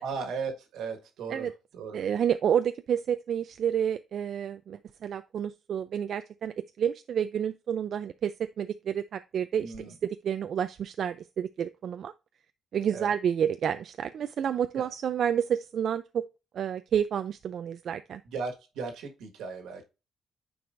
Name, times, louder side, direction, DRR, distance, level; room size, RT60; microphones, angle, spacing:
voice 1, 0.0-2.0 9.6-9.9 12.9-13.1 14.7-14.9 18.2-19.9, right 5 dB, 85° right, 1.6 m, -37 dB
voice 2, 1.9-10.0 10.2-12.1 12.7-16.3 16.5-18.2, right 8 dB, 60° right, 0.3 m, -29 dB
9.2 x 4.7 x 2.5 m
cardioid pair, 90°, 0 cm